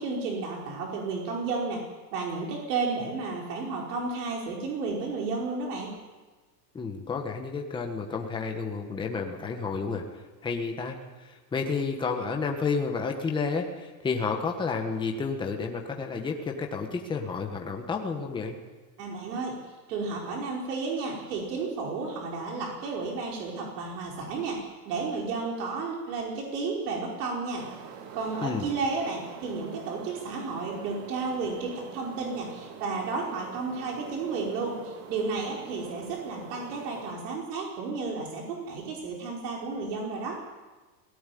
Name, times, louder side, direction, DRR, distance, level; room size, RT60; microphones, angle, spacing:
voice 1, 0.0-1.8 2.1-6.0 19.0-19.6 19.9-27.7 28.1-40.4, right 4 dB, 70° right, -1 dB, 5.0 m, -32 dB
voice 2, 6.7-10.0 10.4-18.6 28.4-28.7, left 5 dB, 10° left, 2 dB, 1.4 m, -31 dB
sound 1, 27.6-37.1, right 6 dB, 45° right, 2.8 m, -45 dB
18.0 x 16.0 x 9.4 m, 1.3 s
supercardioid pair, 170°, 50 cm